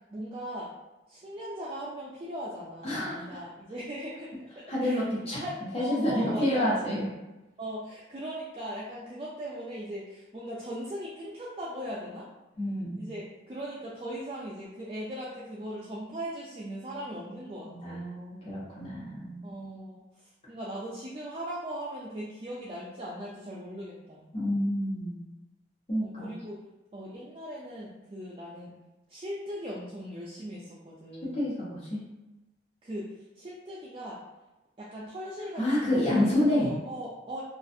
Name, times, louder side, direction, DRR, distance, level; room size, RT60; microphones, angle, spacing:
voice 1, 0.1-0.7 1.1-5.0 5.3-6.7 7.6-12.3 13.0-18.1 19.4-24.3 26.0-26.6 26.9-28.7 29.1-31.4 32.8-33.1 33.4-34.2 34.8-37.4, equal, 30° right, -6 dB, 0.3 m, -39 dB
voice 2, 2.8-3.4 4.7-5.4 5.7-7.1 12.6-13.0 17.6-19.4 24.3-25.2 25.9-26.3 31.2-32.0 35.6-36.7, left 1 dB, 30° left, -8 dB, 0.9 m, -28 dB
2.4 x 2.3 x 2.6 m, 1.0 s
head